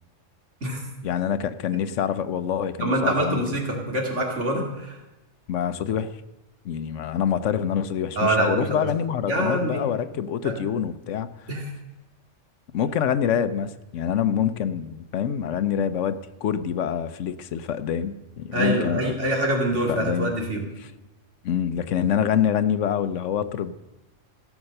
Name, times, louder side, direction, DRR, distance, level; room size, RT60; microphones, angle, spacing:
voice 1, 1.0-3.6 5.5-6.2 6.6-11.3 12.7-19.2 19.9-20.4 21.4-23.7, left 8 dB, 80° left, 13 dB, 1.0 m, -26 dB
voice 2, 2.8-5.0 8.2-8.9 9.3-9.8 10.4-10.6 11.5-11.7 18.5-20.6, right 1 dB, 70° right, 0 dB, 2.8 m, -25 dB
15.5 x 7.2 x 6.5 m, 1.0 s
omnidirectional pair, 1.3 m